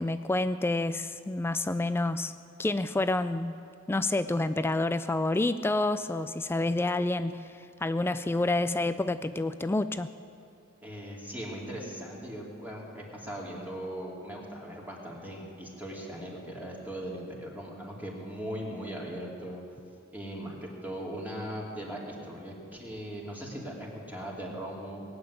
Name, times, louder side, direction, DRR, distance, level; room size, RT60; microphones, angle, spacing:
voice 1, 0.0-2.3 2.6-3.5 3.9-10.1, left 2 dB, 10° left, 12 dB, 0.3 m, -28 dB
voice 2, 10.8-19.6 20.1-25.0, equal, 10° right, -3 dB, 2.7 m, -39 dB
19.5 x 7.9 x 9.5 m, 2.4 s
head